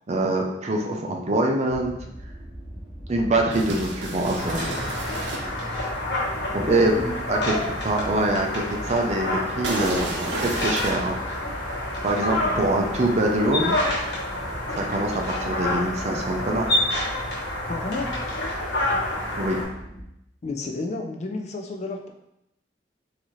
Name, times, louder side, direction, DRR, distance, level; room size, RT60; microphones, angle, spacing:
voice 1, 0.1-1.9 3.1-4.8 6.5-6.9 7.3-7.5 7.8-11.2 12.0-13.8 14.7-16.7 19.4-19.6, right 2 dB, 40° right, 1 dB, 0.5 m, -24 dB
sound 1, 1.7-20.0, equal, 5° right, 1.3 m, -40 dB
sound 2, 3.5-5.4 9.6-10.9, right 2 dB, 85° right, 0.7 m, -31 dB
sound 3, 4.4-19.6, left 1 dB, 85° left, 1.2 m, -28 dB
voice 2, 6.7-7.3 17.7-18.1 20.4-22.1, left 3 dB, 40° left, 2 dB, 0.4 m, -31 dB
3.9 x 2.7 x 3.0 m, 0.84 s
head